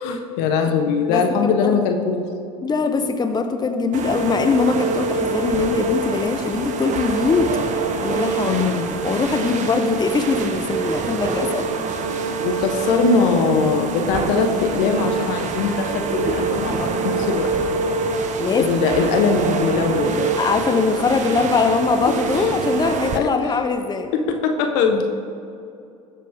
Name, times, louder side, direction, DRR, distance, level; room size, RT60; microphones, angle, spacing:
voice 1, 0.0-2.3 8.5-8.9 12.4-17.5 18.5-20.4 20.7-20.8 22.4-22.5 23.1-23.3 24.1-25.0, left 5 dB, 65° left, 4 dB, 1.4 m, -21 dB
voice 2, 1.1-1.8 2.6-7.5 8.0-8.6 9.0-11.6 18.4-18.7 20.4-24.1, left 4 dB, 25° left, 6 dB, 1.1 m, -21 dB
sound 1, 3.9-23.2, right 4 dB, 45° right, 1.2 m, -25 dB
20.0 x 7.4 x 3.8 m, 2.6 s
hypercardioid pair, 70°, 18 cm